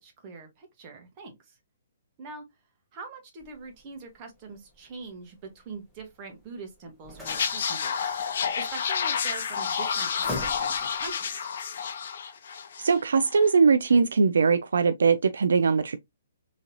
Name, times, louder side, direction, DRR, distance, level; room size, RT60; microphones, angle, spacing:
voice 1, 0.0-1.6 2.2-2.4 2.9-8.1 8.5-11.5, right 4 dB, 30° right, 1.4 m, -43 dB
sound 1, 3.4-11.1, left 1 dB, 5° right, 1.4 m, -45 dB
sound 2, 7.2-13.0 13.2-13.5, left 7 dB, 60° left, 0.7 m, -30 dB
voice 2, 12.8-16.0, right 5 dB, 85° right, 0.4 m, -21 dB
3.6 x 3.1 x 2.7 m
hypercardioid pair, 150°, 0 cm